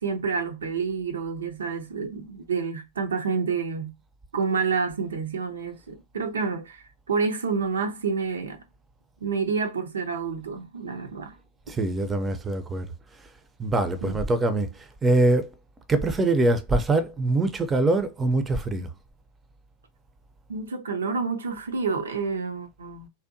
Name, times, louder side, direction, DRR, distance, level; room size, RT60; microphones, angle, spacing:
voice 1, 0.0-3.9 4.3-8.6 9.2-11.3 14.0-14.2 20.5-23.1, right 5 dB, 80° right, 0.4 m, -29 dB
voice 2, 11.7-12.9 13.6-14.7 15.0-15.5 15.9-18.9, right 2 dB, 20° right, 0.5 m, -23 dB
2.6 x 2.1 x 2.6 m
hypercardioid pair, 95°, 0 cm